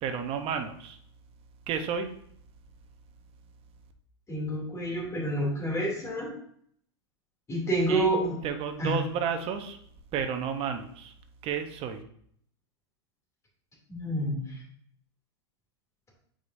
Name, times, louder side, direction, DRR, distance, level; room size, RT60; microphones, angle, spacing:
voice 1, 0.0-1.0 1.7-2.1 7.9-8.1 8.4-9.8 10.1-11.1 11.4-12.0, right 7 dB, 40° right, 7 dB, 0.9 m, -31 dB
voice 2, 4.3-6.3 7.5-8.3 8.8-9.0 13.9-14.6, right 1 dB, 20° left, -3 dB, 2.8 m, -28 dB
8.4 x 5.0 x 2.7 m, 0.65 s
hypercardioid pair, 110°, 15 cm